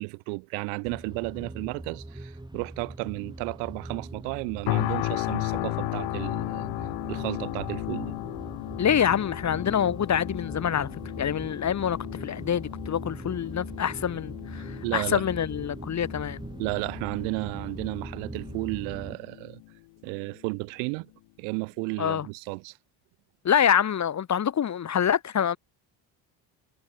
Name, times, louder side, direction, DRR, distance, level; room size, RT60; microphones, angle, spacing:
voice 1, 0.0-6.7 7.1-8.2 14.8-15.2 16.6-19.6 20.0-21.1 21.4-22.8, right 40 dB or more, 85° right, 2.3 m, -33 dB
sound 1, 0.8-19.2, right 1 dB, 10° right, 6.2 m, -41 dB
sound 2, 4.7-19.7 20.2-20.3, left 23 dB, 70° left, 0.8 m, -35 dB
voice 2, 8.8-10.9 11.2-16.4 22.0-22.3 23.4-25.6, left 9 dB, 35° left, 1.0 m, -26 dB
supercardioid pair, 70°, 48 cm